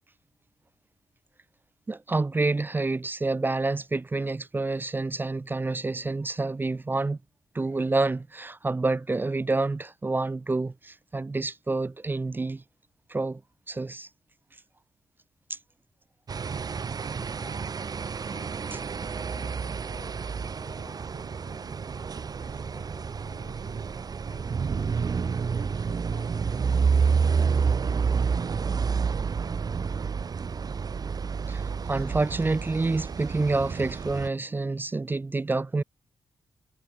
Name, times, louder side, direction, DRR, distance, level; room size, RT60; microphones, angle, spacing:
voice 1, 1.9-7.2 7.5-12.6 13.1-13.4 13.7-14.1 15.5-15.6 31.5-35.8, right 3 dB, 25° right, 0.5 m, -28 dB
sound 1, 16.3-34.3, right 5 dB, 50° right, 1.1 m, -29 dB
voice 2, 17.0-17.7 18.3-21.9 22.3-28.4, left 10 dB, 80° left, 5.0 m, -55 dB
supercardioid pair, 50°, 8 cm